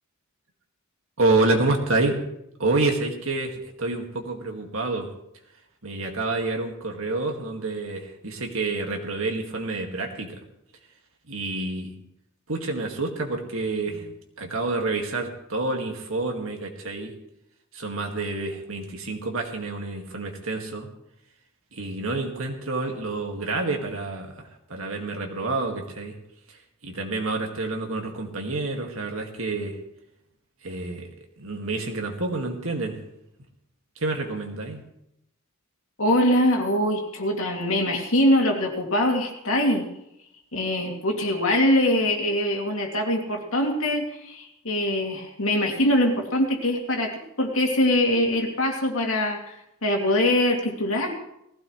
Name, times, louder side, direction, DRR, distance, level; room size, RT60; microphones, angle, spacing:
voice 1, 1.2-2.2 2.6-5.1 5.8-10.4 11.3-11.9 12.5-17.1 17.7-20.9 21.7-26.1 26.8-29.8 30.6-31.1 31.4-33.0 34.0-34.8, right 3 dB, 70° right, 2 dB, 2.1 m, -28 dB
voice 2, 36.0-39.9 40.5-49.5 49.8-51.1, left 1 dB, 70° left, 1 dB, 2.6 m, -23 dB
19.0 x 15.5 x 3.3 m, 0.80 s
head